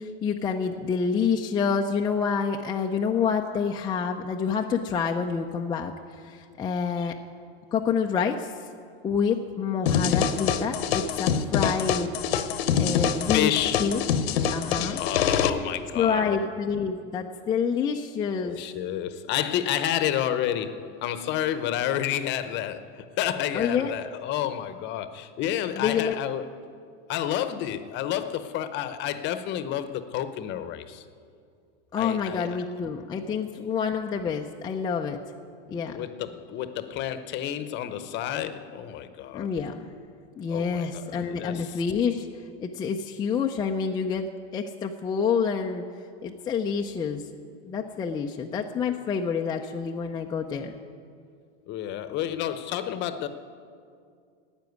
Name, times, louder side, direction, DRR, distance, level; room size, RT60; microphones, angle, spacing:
voice 1, 0.0-5.9 6.2-7.2 7.7-8.5 9.0-12.1 12.8-13.5 13.8-14.0 14.5-15.0 16.0-18.6 23.5-23.9 25.8-26.1 31.9-35.2 35.7-36.0 39.3-39.9 40.4-42.3 42.6-45.9 46.2-47.2 47.6-50.7, left 6 dB, 15° left, 1 dB, 0.4 m, -27 dB
sound 1, 9.9-15.5, left 8 dB, 80° left, 1.0 m, -25 dB
voice 2, 13.1-14.1 14.9-16.5 18.4-26.4 27.1-31.0 32.0-32.6 33.2-33.3 35.9-39.5 40.5-41.8 51.7-53.3, left 11 dB, 35° left, 12 dB, 0.8 m, -30 dB
12.0 x 8.9 x 9.3 m, 2.3 s
supercardioid pair, 140°, 31 cm